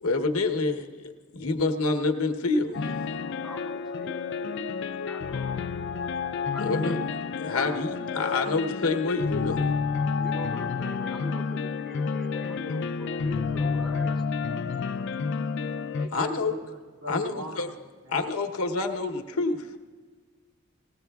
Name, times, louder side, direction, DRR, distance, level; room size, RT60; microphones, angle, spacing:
voice 1, 0.0-2.8 6.6-7.0 7.4-9.6 16.1-16.6 17.1-17.7 18.1-19.7, left 3 dB, 85° left, 4 dB, 0.9 m, -27 dB
sound 1, 2.7-16.1, left 5 dB, 55° left, 0.3 m, -30 dB
voice 2, 3.4-6.0 6.5-7.1 7.5-8.3 10.1-14.1, left 1 dB, ahead, -2 dB, 0.6 m, -43 dB
voice 3, 15.9-17.8 18.0-18.2, equal, 75° right, -2 dB, 2.3 m, -40 dB
19.5 x 15.5 x 2.3 m, 1.5 s
head